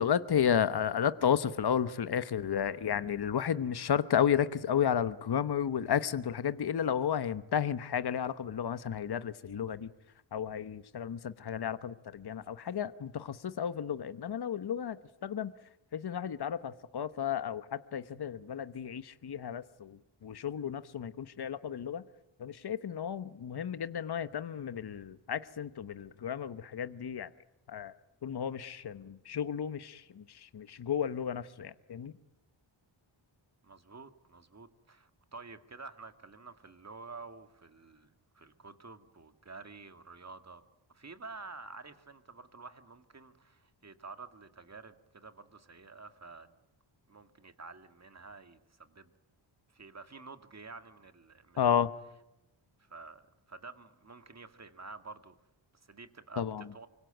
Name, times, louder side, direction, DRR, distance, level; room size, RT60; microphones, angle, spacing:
voice 1, 0.0-9.9 10.3-15.0 15.2-15.5 15.9-22.0 22.4-27.3 27.7-27.9 28.2-32.1 51.6-51.9 56.4-56.7, left 8 dB, 55° left, 13 dB, 1.0 m, -32 dB
voice 2, 33.6-40.6 40.9-46.7 47.1-49.1 49.7-51.6 52.8-53.2 53.5-55.4 55.7-56.9, right 4 dB, 35° right, 9 dB, 2.1 m, -50 dB
25.0 x 24.0 x 9.2 m, 0.87 s
wide cardioid pair, 95°, 48 cm